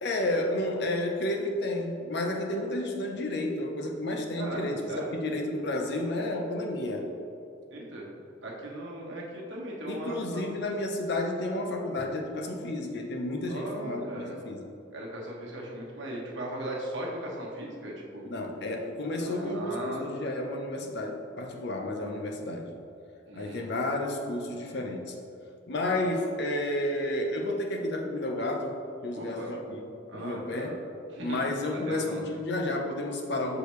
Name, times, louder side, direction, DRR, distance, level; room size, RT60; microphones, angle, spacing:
voice 1, 0.0-7.1 9.9-14.6 18.2-22.7 23.3-25.1 25.7-30.8 31.2-33.6, left 1 dB, 60° left, 2 dB, 0.7 m, -31 dB
voice 2, 4.4-5.1 7.7-8.1 8.4-10.5 13.5-14.4 14.9-18.3 19.2-20.1 23.3-23.6 29.1-29.5 30.1-30.7 31.1-31.4 31.7-32.4, right 1 dB, 65° right, -3 dB, 1.2 m, -38 dB
6.6 x 4.9 x 3.2 m, 2.7 s
head